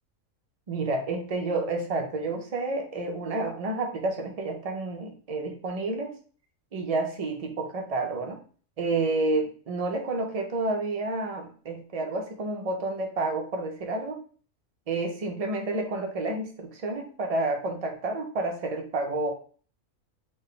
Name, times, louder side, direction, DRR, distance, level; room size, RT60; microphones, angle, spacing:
voice 1, 0.7-6.1 6.7-8.4 8.8-14.2 14.9-19.3, right 2 dB, 75° right, 3 dB, 0.3 m, -30 dB
3.8 x 2.3 x 3.7 m, 0.42 s
omnidirectional pair, 1.4 m